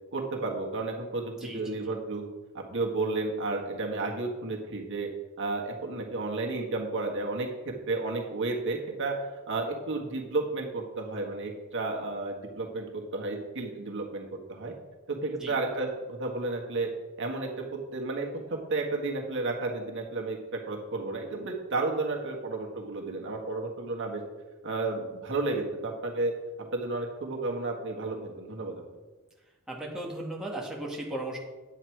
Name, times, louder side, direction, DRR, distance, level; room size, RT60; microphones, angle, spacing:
voice 1, 0.1-2.2 2.5-5.1 5.4-14.7 15.1-16.9 17.2-24.2 24.6-26.3 26.6-28.8, right 3 dB, 60° right, 0 dB, 1.7 m, -32 dB
voice 2, 29.7-31.4, right 1 dB, 5° right, -4 dB, 1.8 m, -36 dB
9.9 x 8.3 x 4.7 m, 1.2 s
head